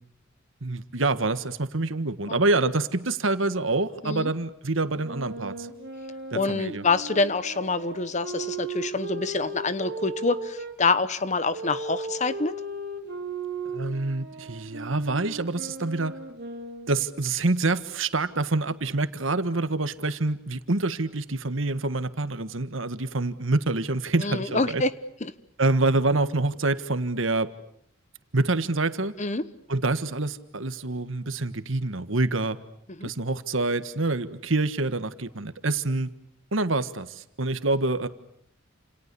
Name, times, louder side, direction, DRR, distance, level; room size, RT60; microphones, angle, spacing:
voice 1, 0.6-5.7 6.3-6.8 13.7-16.2 16.9-24.8 25.6-27.5 28.3-29.1 29.7-32.6 33.0-36.1 36.5-38.1, right 2 dB, 75° right, 11 dB, 1.6 m, -26 dB
sound 1, 5.0-10.8 11.5-17.1, right 3 dB, 55° right, 3.4 m, -37 dB
voice 2, 6.3-12.6 24.2-24.9 25.2-25.3 29.2-29.4 33.0-33.1, left 3 dB, 35° left, 14 dB, 1.1 m, -26 dB
29.5 x 28.0 x 7.0 m, 0.68 s
head